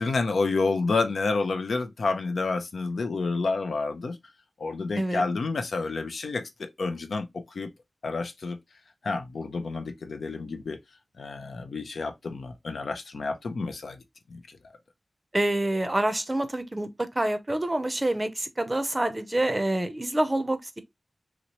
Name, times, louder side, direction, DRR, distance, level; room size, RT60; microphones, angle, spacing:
voice 1, 0.0-4.2 4.6-7.7 8.0-8.6 9.0-10.8 11.2-14.0 14.3-14.4, left 3 dB, 85° left, 0.5 m, -29 dB
voice 2, 15.3-20.8, right 1 dB, 25° right, 0.5 m, -27 dB
3.0 x 2.9 x 2.9 m
wide cardioid pair, 85°, 0 cm